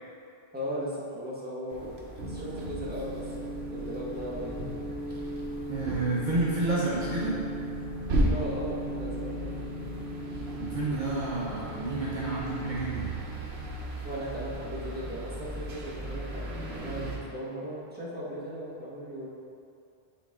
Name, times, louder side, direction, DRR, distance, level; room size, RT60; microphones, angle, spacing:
voice 1, 0.5-2.0 2.3-4.6 8.2-9.6 12.2-12.3 14.0-19.3, equal, 10° right, -7 dB, 1.2 m, -37 dB
sound 1, 1.7-17.2, right 1 dB, 75° right, 1.1 m, -36 dB
sound 2, 2.2-12.8, equal, 50° left, 0.7 m, -38 dB
voice 2, 5.7-7.4 10.6-13.2, right 2 dB, 50° right, -6 dB, 0.9 m, -30 dB
8.4 x 4.0 x 3.6 m, 2.5 s
omnidirectional pair, 1.1 m